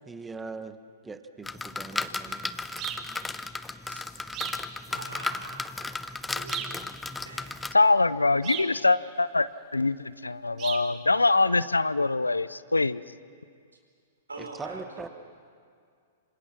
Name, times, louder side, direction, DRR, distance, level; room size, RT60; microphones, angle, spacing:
voice 1, 0.1-0.8 1.0-2.4 14.6-15.1, right 4 dB, 10° right, 10 dB, 1.3 m, -40 dB
sound 1, 1.4-7.7, left 3 dB, 10° left, 0.7 m, -35 dB
sound 2, 2.8-3.1 4.3-4.7 6.5-6.8 8.4-8.8 10.6-10.9, right 10 dB, 35° right, 1.9 m, -35 dB
voice 2, 4.9-5.6 6.3-6.8 7.2-7.5 14.3-15.1, right 3 dB, 85° right, 3 dB, 4.3 m, -43 dB
voice 3, 7.7-13.0, left 3 dB, 90° left, 18 dB, 0.5 m, -24 dB
27.0 x 26.0 x 6.0 m, 2.2 s
figure-of-eight pair, 105°, 0 cm